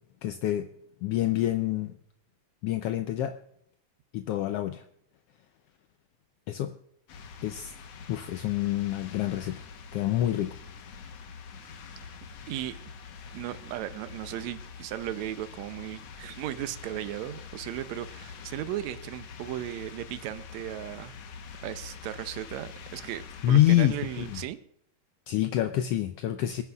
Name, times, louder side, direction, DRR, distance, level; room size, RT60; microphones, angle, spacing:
voice 1, 0.2-0.7 1.0-1.9 2.6-3.4 4.1-4.8 6.5-6.7 7.4-7.7 8.1-9.6 9.9-10.6 23.4-24.4 25.3-26.6, left 13 dB, 85° left, 8 dB, 1.3 m, -27 dB
sound 1, 7.1-24.5, left 6 dB, 65° left, 2.0 m, -45 dB
voice 2, 12.5-12.8 13.3-21.1 21.6-24.6, right 13 dB, 80° right, 11 dB, 1.9 m, -36 dB
27.5 x 9.5 x 2.4 m, 0.73 s
omnidirectional pair, 3.4 m